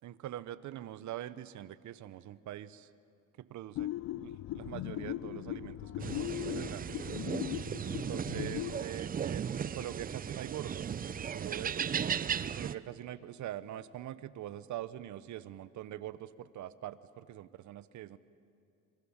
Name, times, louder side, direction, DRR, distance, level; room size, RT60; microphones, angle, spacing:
voice 1, 0.0-2.9 3.4-3.9 4.2-6.8 7.9-11.8 12.4-18.2, right 12 dB, 55° right, 15 dB, 1.0 m, -43 dB
sound 1, 3.7-8.8, left 14 dB, 50° left, 0.5 m, -39 dB
sound 2, 6.0-12.7, right 8 dB, 25° right, 0.5 m, -36 dB
27.0 x 22.5 x 7.3 m, 2.5 s
cardioid pair, 105°, 35 cm